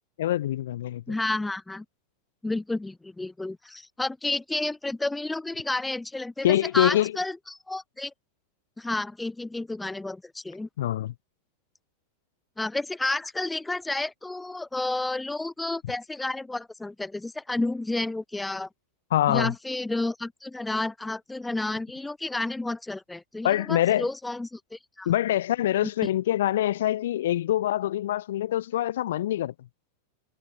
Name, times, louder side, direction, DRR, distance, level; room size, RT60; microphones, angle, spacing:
voice 1, 0.2-1.2 6.4-7.1 10.8-11.1 19.1-19.5 23.4-24.1 25.0-29.5, left 13 dB, 65° left, 3.1 m, -25 dB
voice 2, 1.1-1.8 2.4-8.1 8.8-10.7 12.6-18.7 19.3-25.1 26.0-26.1, left 2 dB, 5° left, 4.5 m, -31 dB
figure-of-eight pair, 90°, 0 cm